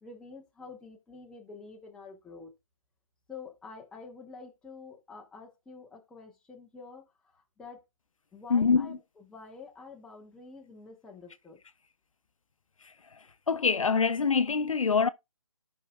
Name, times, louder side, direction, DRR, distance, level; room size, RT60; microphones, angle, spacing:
voice 1, 0.0-2.5 3.3-7.8 8.3-11.6, left 4 dB, 5° left, 1.1 m, -48 dB
voice 2, 8.5-9.0 12.8-13.2 13.5-15.1, left 5 dB, 70° left, 0.7 m, -25 dB
13.5 x 5.9 x 2.4 m
figure-of-eight pair, 155°, 18 cm